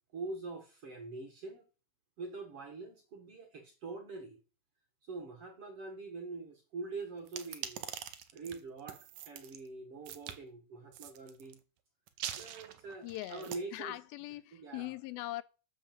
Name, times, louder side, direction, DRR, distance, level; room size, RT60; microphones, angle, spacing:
voice 1, 0.1-1.6 2.2-4.4 5.0-7.8 8.3-11.6 12.3-14.0 14.5-14.9, right 3 dB, 50° right, 1.8 m, -44 dB
sound 1, 7.3-9.6 10.1-10.4 10.9-11.5 12.1-13.6, right 10 dB, 70° right, 2.1 m, -44 dB
voice 2, 13.0-15.4, left 17 dB, 85° left, 2.5 m, -41 dB
10.5 x 6.4 x 7.5 m
omnidirectional pair, 4.2 m